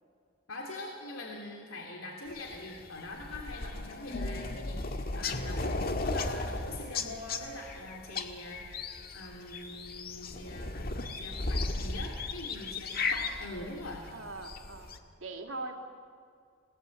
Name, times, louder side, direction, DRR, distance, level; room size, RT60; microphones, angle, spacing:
voice 1, 0.5-10.7 11.2-14.1, left 2 dB, 85° left, 0 dB, 3.1 m, -43 dB
sound 1, 2.3-15.0, left 3 dB, 45° left, 1.7 m, -36 dB
voice 2, 14.1-15.7, right 2 dB, 75° right, 3 dB, 2.8 m, -41 dB
29.0 x 18.5 x 8.6 m, 2.2 s
head